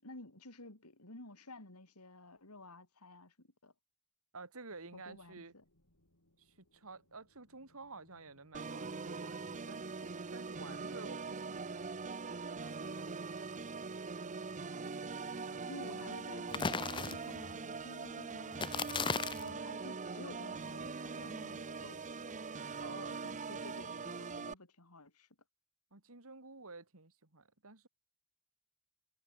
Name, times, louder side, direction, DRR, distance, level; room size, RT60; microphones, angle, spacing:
voice 1, 0.0-3.7 4.9-5.6 15.2-18.6 19.4-22.4 22.9-25.3, left 2 dB, 90° left, 4.4 m, -53 dB
voice 2, 4.3-5.5 6.4-13.5 15.3-15.6 22.7-23.3 25.9-27.9, right 3 dB, 70° right, 2.9 m, -52 dB
sound 1, 4.7-21.7, left 1 dB, 70° left, 6.3 m, -72 dB
Organ, 8.5-24.5, right 4 dB, 35° right, 0.8 m, -42 dB
sound 2, 16.5-17.5 18.5-19.5, left 5 dB, 20° left, 0.5 m, -36 dB
head